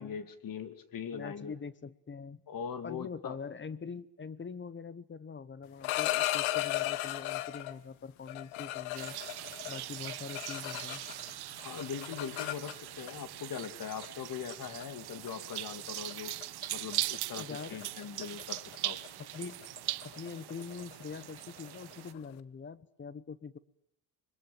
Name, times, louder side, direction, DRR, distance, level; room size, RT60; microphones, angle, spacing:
voice 1, 0.0-1.5 2.5-3.4 11.6-16.4 16.7-19.0, left 7 dB, 45° left, 12 dB, 2.6 m, -41 dB
voice 2, 1.1-2.4 2.8-9.2 9.7-11.1 17.4-17.8 19.2-19.7 20.0-23.6, left 5 dB, 25° left, 19 dB, 1.0 m, -43 dB
sound 1, 5.6-7.8 8.3-11.3 11.6-13.1 14.0-14.2 14.5-14.8 15.3-15.5 15.9-16.1 16.4-16.7 16.9-22.3, left 16 dB, 80° left, 1.5 m, -36 dB
sound 2, 8.9-22.1, right 15 dB, 55° right, 1.0 m, -41 dB
26.5 x 22.0 x 9.0 m, 0.80 s
cardioid pair, 100°, 46 cm